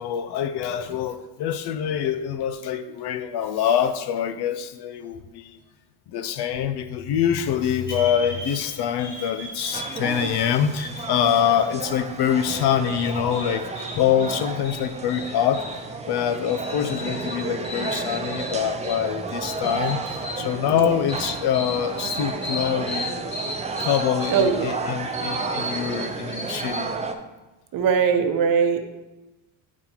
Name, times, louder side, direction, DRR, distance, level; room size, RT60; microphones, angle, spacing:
voice 1, 0.0-5.6 6.1-15.7 16.1-23.1 23.8-26.9, left 9 dB, 60° left, 11 dB, 0.6 m, -25 dB
sound 1, 7.9-26.9, left 1 dB, 25° left, 2.4 m, -36 dB
crowd intcuban fast food rest, 9.7-27.1, right 4 dB, 15° right, 0.5 m, -32 dB
voice 2, 24.3-24.7 27.7-28.8, right 6 dB, 45° right, 6 dB, 0.9 m, -20 dB
10.5 x 4.1 x 2.9 m, 1.1 s
cardioid pair, 100°, 46 cm